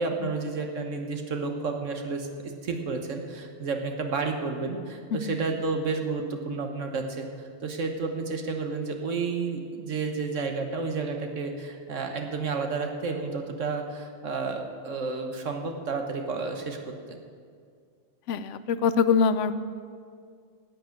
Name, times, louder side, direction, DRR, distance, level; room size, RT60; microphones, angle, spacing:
voice 1, 0.0-2.3 2.6-7.3 7.6-16.8 17.1-17.2, right 4 dB, 85° right, 4 dB, 1.6 m, -31 dB
voice 2, 18.3-19.5, left 6 dB, 80° left, 13 dB, 1.0 m, -24 dB
11.5 x 8.6 x 8.7 m, 2.2 s
omnidirectional pair, 1.3 m